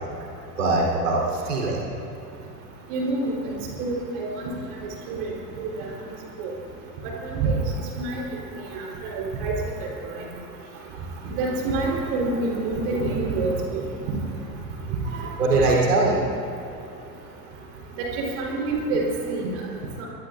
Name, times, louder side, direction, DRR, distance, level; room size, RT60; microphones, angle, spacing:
voice 1, 0.6-1.8 15.4-16.2, right 2 dB, 70° right, -3 dB, 3.8 m, -21 dB
voice 2, 2.9-4.4 5.1-5.2 5.6-5.9 6.4-6.5 7.3-7.5 8.0-8.2 8.7-9.6 11.2-13.8 15.1-15.3 18.0-19.5, right 3 dB, 45° right, -2 dB, 4.0 m, -27 dB
25.0 x 21.0 x 2.6 m, 2.7 s
figure-of-eight pair, 85°, 49 cm